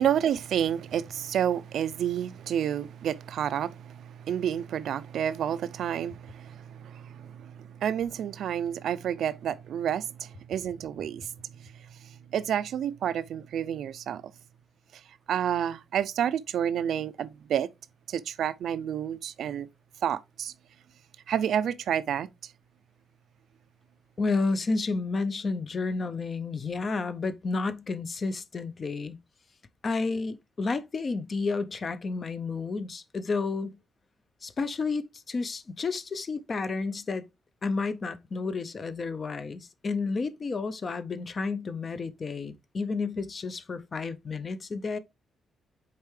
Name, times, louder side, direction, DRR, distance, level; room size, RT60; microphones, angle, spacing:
voice 1, 0.0-11.3 11.6-11.7 12.0-14.2 15.3-17.7 18.1-19.7 20.0-20.5 21.3-22.5, right 9 dB, 65° right, 0.4 m, -30 dB
voice 2, 24.2-29.2 29.8-33.7 34.4-37.2 37.6-45.0, left 4 dB, 30° left, 0.5 m, -31 dB
6.6 x 4.5 x 3.2 m
wide cardioid pair, 170°, 0 cm